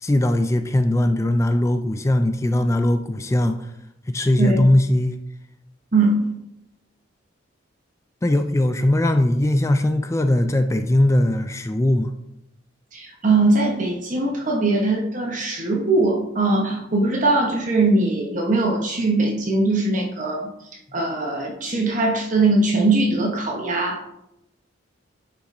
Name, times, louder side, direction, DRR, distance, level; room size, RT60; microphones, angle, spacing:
voice 1, 0.0-3.6 4.1-5.2 8.2-12.1, left 1 dB, 15° left, 8 dB, 0.3 m, -20 dB
voice 2, 4.4-4.7 5.9-6.3 12.9-20.5 20.9-24.0, right 2 dB, 40° right, 1 dB, 1.0 m, -21 dB
9.9 x 5.8 x 2.6 m, 0.83 s
head